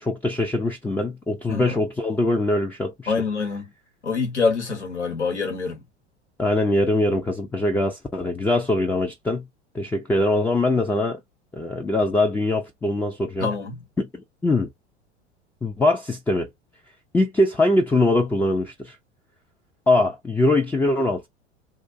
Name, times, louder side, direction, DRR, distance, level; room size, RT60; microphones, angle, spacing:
voice 1, 0.0-3.1 6.4-9.4 9.7-11.2 11.5-13.5 14.0-14.7 15.6-16.5 17.1-19.0 19.9-21.3, left 2 dB, 5° left, 0.3 m, -22 dB
voice 2, 3.1-3.7 4.0-5.8 13.4-13.8, left 4 dB, 90° left, 1.1 m, -25 dB
2.4 x 2.4 x 2.5 m
figure-of-eight pair, 80°, 34 cm